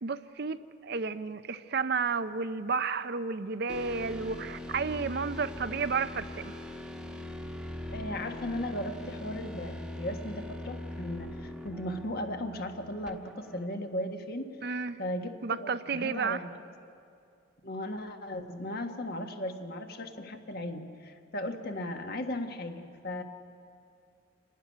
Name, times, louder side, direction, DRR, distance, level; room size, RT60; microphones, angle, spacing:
voice 1, 0.0-6.6 14.6-15.0 15.4-16.4, right 5 dB, 55° right, 12 dB, 0.6 m, -32 dB
sound 1, 3.7-13.7, left 1 dB, 5° right, 1.3 m, -41 dB
voice 2, 7.9-14.5 15.0-16.5 17.6-23.2, left 1 dB, 50° left, 5 dB, 1.6 m, -36 dB
27.0 x 12.0 x 9.8 m, 2.5 s
head